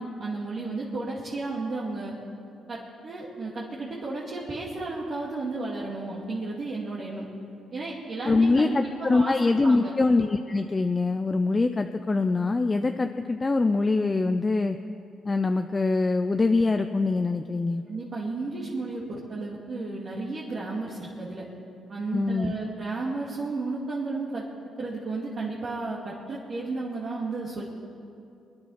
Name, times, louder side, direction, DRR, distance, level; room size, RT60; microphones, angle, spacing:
voice 1, 0.0-2.1 2.7-7.3 7.7-9.3 9.6-9.9 17.9-21.4 21.9-24.4 24.8-27.6, right 3 dB, 45° right, -6 dB, 2.4 m, -33 dB
voice 2, 8.3-14.8 15.3-17.8 22.1-22.5, left 3 dB, 25° left, 7 dB, 0.6 m, -24 dB
23.5 x 10.0 x 5.7 m, 2.5 s
cardioid pair, 90°, 0 cm